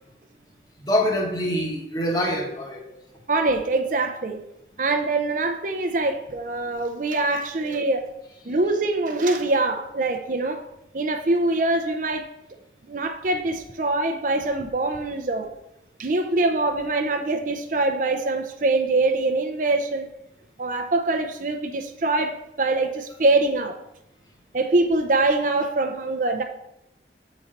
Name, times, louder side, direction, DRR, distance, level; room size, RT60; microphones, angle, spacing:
voice 1, 0.8-3.0 7.6-7.9, equal, 20° left, 1 dB, 1.1 m, -25 dB
voice 2, 3.3-4.4 4.8-8.0 8.4-10.7 10.9-12.3 12.9-15.5 16.0-20.1 20.6-23.8 24.5-26.4, right 2 dB, 45° right, 6 dB, 0.5 m, -24 dB
6.5 x 4.1 x 5.1 m, 0.84 s
head